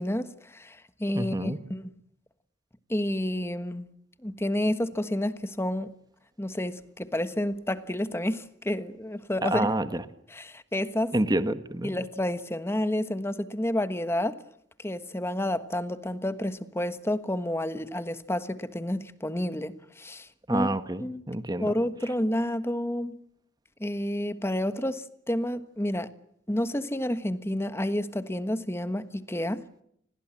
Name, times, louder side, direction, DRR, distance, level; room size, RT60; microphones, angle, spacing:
voice 1, 0.0-1.9 2.9-3.9 4.2-5.9 6.4-9.7 10.3-11.1 11.8-14.4 14.8-20.7 21.0-21.2 21.6-23.2 23.8-26.1 26.5-29.6, left 1 dB, 15° left, 1.3 m, -30 dB
voice 2, 1.1-1.6 9.4-10.0 11.1-11.9 20.5-21.7, right 1 dB, 20° right, 1.3 m, -28 dB
29.5 x 21.0 x 7.5 m
head